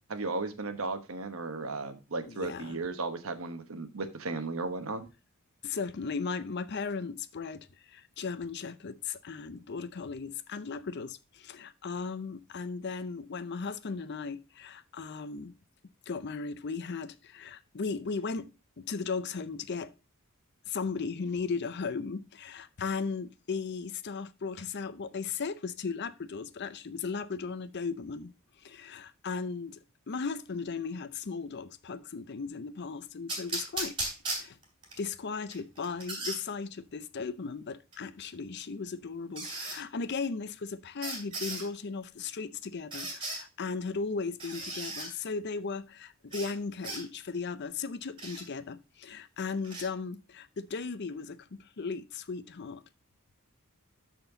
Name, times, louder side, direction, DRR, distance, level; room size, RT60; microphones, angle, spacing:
voice 1, 0.1-5.1, right 3 dB, 70° right, 1.2 m, -35 dB
voice 2, 2.3-2.8 5.6-15.5 16.1-18.5 18.8-19.9 20.7-28.3 28.6-34.0 34.3-34.6 35.0-52.8, left 4 dB, 50° left, 0.6 m, -36 dB
sound 1, 33.3-35.0 35.5-36.4 37.9-38.0 39.4-39.8 41.0-41.7 42.9-43.4 44.4-45.1 46.3-46.5 46.8-47.0 48.2-48.4 49.6-49.8, right 2 dB, 25° right, 3.3 m, -36 dB
12.5 x 4.4 x 3.9 m
head